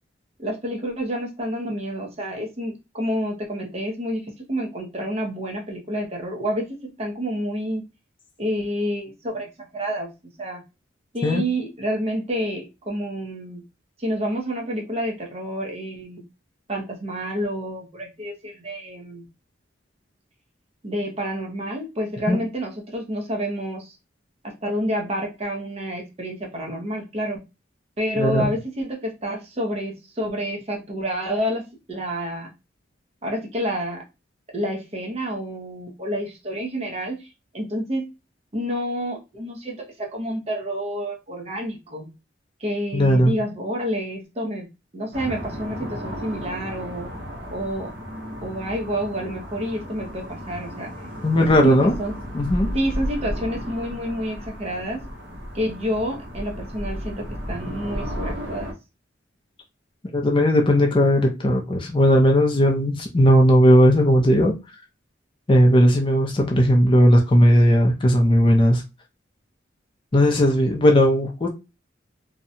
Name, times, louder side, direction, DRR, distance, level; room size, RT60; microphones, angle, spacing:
voice 1, 0.4-7.8 8.4-9.5 9.7-10.1 10.4-10.6 11.1-13.6 14.0-16.2 16.7-19.2 20.8-24.0 24.4-27.4 28.0-32.5 33.2-34.0 34.5-37.3 37.5-38.1 38.5-42.1 42.6-44.7 44.9-47.1 47.5-47.9 48.4-50.9 51.4-52.1 52.7-55.0 55.5-58.7, equal, 35° right, 0.7 m, -29 dB
voice 2, 28.2-28.5 42.9-43.3 51.2-51.9 52.3-52.7 60.1-64.5 65.5-68.8 70.1-71.5, equal, 25° left, 0.4 m, -17 dB
sound 1, 45.1-58.7, equal, 70° right, 1.1 m, -34 dB
2.7 x 2.2 x 2.5 m
head